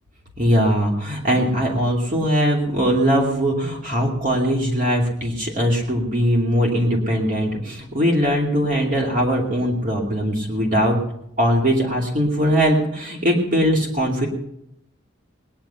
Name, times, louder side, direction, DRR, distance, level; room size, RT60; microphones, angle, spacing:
voice 1, 0.4-11.0 11.4-14.3, equal, 40° right, -1 dB, 2.7 m, -20 dB
20.0 x 10.5 x 5.8 m, 0.77 s
head